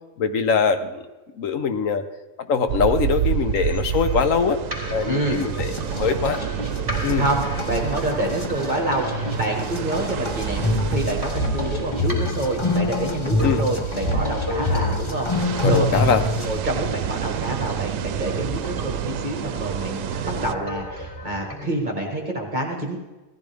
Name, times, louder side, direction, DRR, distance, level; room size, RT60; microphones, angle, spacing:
voice 1, 0.2-1.0 1.4-2.0 2.5-4.6 4.9-6.4 7.0-7.2 13.4-13.6 15.6-16.2, left 6 dB, 85° left, 9 dB, 1.3 m, -22 dB
sound 1, 2.7-20.5, right 10 dB, 90° right, 1.0 m, -29 dB
sound 2, 3.5-21.5, equal, 15° right, 3.2 m, -37 dB
voice 2, 5.1-5.4 7.1-16.0 16.4-23.0, right 1 dB, 35° right, 0 dB, 1.7 m, -27 dB
sound 3, 5.3-16.6, left 2 dB, 25° left, 0.9 m, -27 dB
16.5 x 14.0 x 3.4 m, 1.1 s
omnidirectional pair, 1.3 m